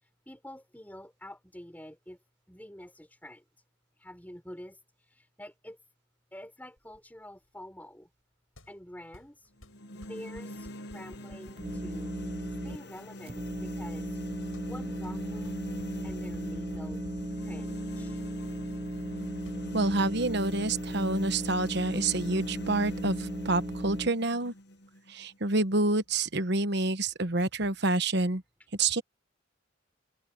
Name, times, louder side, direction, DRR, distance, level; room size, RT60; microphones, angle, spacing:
voice 1, 0.0-2.2 2.5-3.4 4.0-5.8 6.3-8.1 8.7-9.5 9.9-12.1 12.5-14.2 14.6-15.7 16.0-17.0 17.4-18.2, left 1 dB, 10° left, 6.3 m, -47 dB
sound 1, 6.8-22.9, left 1 dB, 85° left, 7.6 m, -57 dB
sound 2, 9.6-25.6, equal, 55° left, 1.3 m, -43 dB
sound 3, 11.6-12.8 13.3-24.1, right 1 dB, 25° right, 0.7 m, -36 dB
voice 2, 19.7-24.5 25.1-28.4 28.8-29.0, right 2 dB, 55° right, 1.2 m, -28 dB
head